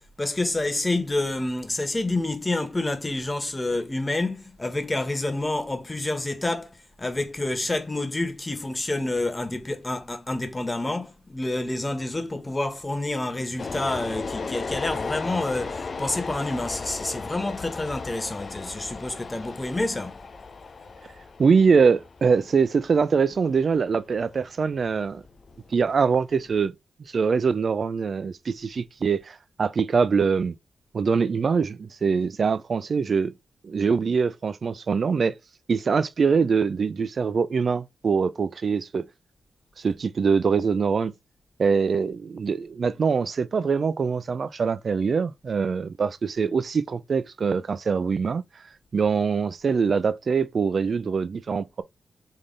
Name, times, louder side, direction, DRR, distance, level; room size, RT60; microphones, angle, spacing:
voice 1, 0.2-6.7 7.0-20.2, left 2 dB, 20° left, 1.1 m, -28 dB
sound 1, 13.6-26.7, left 4 dB, 55° left, 0.6 m, -36 dB
voice 2, 21.4-25.2 25.7-26.7 27.1-30.5 30.9-33.3 33.6-35.3 35.7-39.1 39.8-41.1 41.6-48.4 48.9-51.8, right 5 dB, 60° right, 0.4 m, -23 dB
3.6 x 3.3 x 3.8 m
cardioid pair, 65°, 0 cm